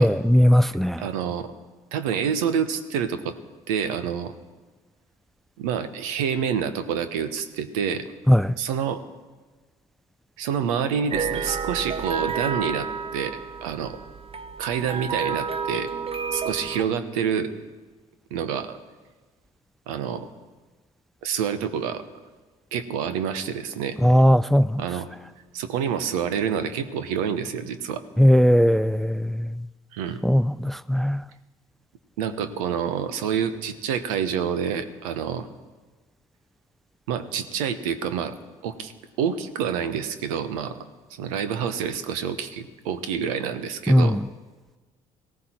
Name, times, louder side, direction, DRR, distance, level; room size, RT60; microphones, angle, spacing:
voice 1, 0.0-1.0 8.3-8.6 24.0-24.8 28.2-29.5 30.2-31.2 43.9-44.3, equal, ahead, 0.5 m, -18 dB
voice 2, 1.0-1.5 1.9-3.4 3.7-4.3 5.6-8.1 8.6-9.0 10.4-14.0 14.6-15.9 16.3-17.5 18.3-18.8 19.9-20.3 21.2-22.0 22.7-24.0 24.8-25.1 25.5-28.0 29.9-30.2 32.2-35.5 37.1-38.4 38.6-38.9 39.2-44.2, right 7 dB, 80° right, 1.1 m, -27 dB
sound 1, 11.1-16.8, right 6 dB, 35° right, 0.9 m, -30 dB
19.0 x 16.5 x 4.5 m
hypercardioid pair, 55°, 18 cm